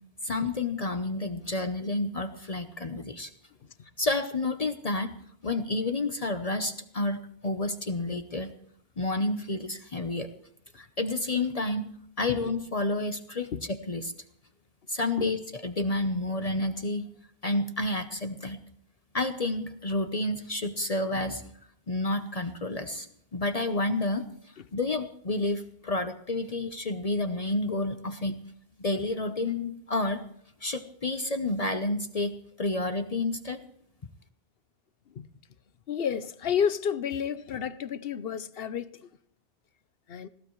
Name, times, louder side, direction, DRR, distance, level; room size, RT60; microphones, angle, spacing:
voice 1, 0.2-3.3 4.0-5.1 5.4-8.5 9.0-10.3 10.7-11.9 12.2-14.1 14.9-17.1 17.4-18.6 19.1-21.4 21.9-23.1 23.3-24.3 24.7-28.4 28.8-30.2 30.6-33.6, left 2 dB, 40° left, 0.9 m, -30 dB
voice 2, 35.9-38.9 40.1-40.3, left 7 dB, 65° left, 1.0 m, -30 dB
20.0 x 17.5 x 3.1 m
omnidirectional pair, 1.1 m